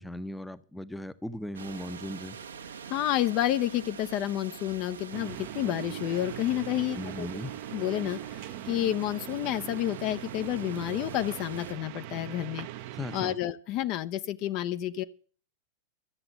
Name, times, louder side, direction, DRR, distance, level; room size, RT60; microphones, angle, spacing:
voice 1, 0.0-2.4 6.9-7.5 12.9-13.4, left 1 dB, 5° left, 0.8 m, -38 dB
sound 1, 1.5-11.7, right 7 dB, 70° right, 1.0 m, -45 dB
voice 2, 2.9-7.3 7.7-12.7 13.1-15.0, left 13 dB, 40° left, 0.7 m, -30 dB
sound 2, 5.1-13.4, right 13 dB, 45° right, 0.7 m, -40 dB
13.0 x 7.7 x 7.8 m
figure-of-eight pair, 90°, 0 cm